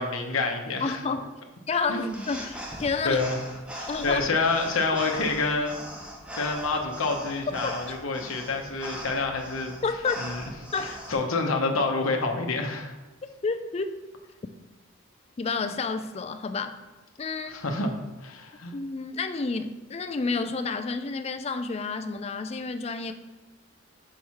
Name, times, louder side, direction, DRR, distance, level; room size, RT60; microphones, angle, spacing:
voice 1, 0.0-1.0 1.9-2.2 3.0-3.4 3.8-5.8 6.3-9.8 10.2-10.4 10.8-12.9 17.5-17.9 18.2-18.7, left 3 dB, 75° left, 3 dB, 0.8 m, -28 dB
voice 2, 0.8-1.4 1.7-3.2 3.9-4.3 7.6-7.7 9.8-10.2 10.7-11.0 13.4-14.0 15.4-16.8 17.2-17.6 18.7-23.1, left 4 dB, 30° left, 8 dB, 0.3 m, -30 dB
sound 1, 1.8-11.1, equal, 5° right, 0.7 m, -40 dB
4.8 x 4.6 x 5.6 m, 1.1 s
head